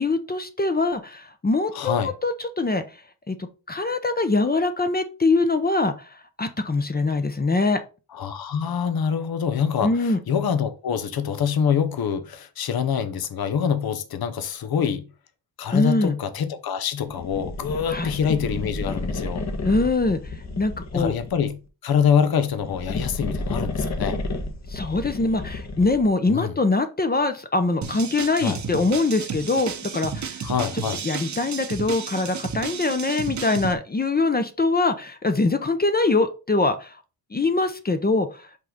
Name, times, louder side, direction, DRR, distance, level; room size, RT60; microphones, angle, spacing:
voice 1, 0.0-2.0 2.2-2.8 3.3-3.4 3.7-7.8 9.8-10.2 15.7-16.1 17.9-18.1 19.6-21.1 24.7-30.5 31.0-37.0 37.3-38.5, left 3 dB, 25° left, 0.7 m, -23 dB
voice 2, 1.7-2.1 8.1-15.0 15.6-19.4 20.9-24.2 26.3-26.5 28.4-28.6 30.4-31.0, left 7 dB, 60° left, 1.0 m, -25 dB
sound 1, 17.1-21.5 22.4-26.1, left 2 dB, 40° left, 1.2 m, -31 dB
sound 2, 27.8-33.7, right 6 dB, 45° right, 0.9 m, -32 dB
5.5 x 3.9 x 5.1 m
cardioid pair, 105°, 41 cm